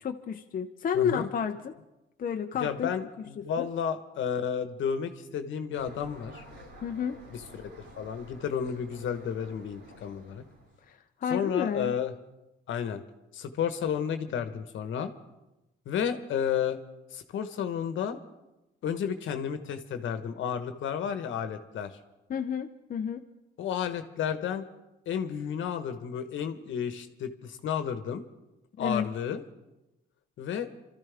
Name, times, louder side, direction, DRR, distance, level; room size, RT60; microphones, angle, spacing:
voice 1, 0.0-1.7 2.2-2.9 3.4-3.7 6.8-7.2 10.9-11.0 11.2-11.9 22.3-23.2 28.8-29.1, left 7 dB, 45° left, 5 dB, 0.7 m, -31 dB
voice 2, 0.9-1.3 2.6-6.4 7.3-7.7 8.0-10.4 11.3-12.1 12.7-13.0 13.3-15.1 15.8-16.8 17.1-18.2 18.8-22.0 23.6-24.6 25.0-28.2 28.8-29.4 30.4-30.7, left 8 dB, 75° left, 8 dB, 1.3 m, -32 dB
sound 1, 5.7-10.9, equal, 85° right, 6.5 m, -51 dB
26.0 x 13.5 x 3.5 m, 0.97 s
cardioid pair, 90°, 20 cm